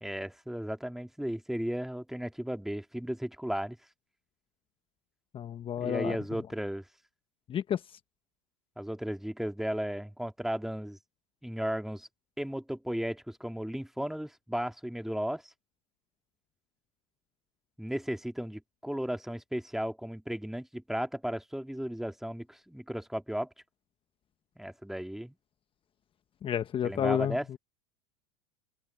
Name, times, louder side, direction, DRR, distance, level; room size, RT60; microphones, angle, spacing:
voice 1, 0.0-3.8 5.8-6.8 8.8-11.0 11.4-12.1 12.4-15.5 17.8-23.5 24.6-25.4 26.8-27.5, equal, ahead, 2.5 m, -35 dB
voice 2, 5.3-6.2 7.5-7.8 26.4-27.4, left 9 dB, 30° left, 1.1 m, -30 dB
hypercardioid pair, 95°, 17 cm